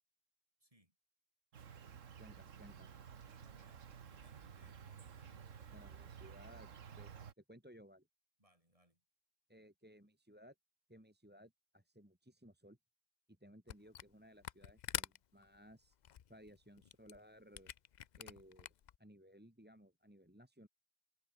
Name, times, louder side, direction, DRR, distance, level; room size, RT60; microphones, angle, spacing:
voice 1, 0.6-1.0 3.3-5.6 8.4-9.0, right 1 dB, 25° right, 7.3 m, -71 dB
Insect, 1.5-7.3, right 7 dB, 85° right, 1.7 m, -54 dB
voice 2, 2.2-2.9 5.7-6.7 7.0-8.1 9.5-10.5 10.9-12.8 13.3-16.0 16.3-17.7 18.2-18.7 19.0-20.7, equal, 10° right, 2.4 m, -60 dB
Camera, 13.7-14.1 14.4-19.0, left 9 dB, 55° left, 0.5 m, -46 dB
omnidirectional pair, 1.3 m